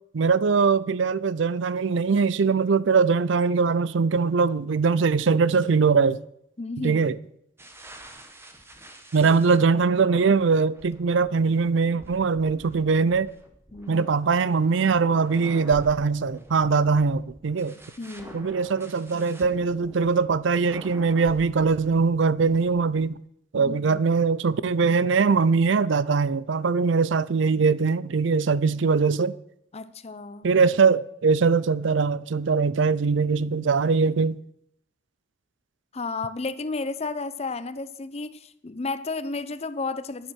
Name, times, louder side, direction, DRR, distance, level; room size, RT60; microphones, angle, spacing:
voice 1, 0.1-6.2 6.8-7.2 9.1-13.3 13.9-17.8 18.3-23.2 23.5-29.3 30.4-34.4, right 5 dB, 65° right, 0.5 m, -22 dB
voice 2, 6.6-7.2 9.2-9.3 13.7-14.0 18.0-18.6 23.6-24.0 29.7-30.5 35.9-40.3, left 3 dB, 30° left, 0.6 m, -33 dB
sound 1, 7.6-23.1, right 1 dB, 10° right, 1.2 m, -47 dB
10.5 x 9.3 x 6.3 m
head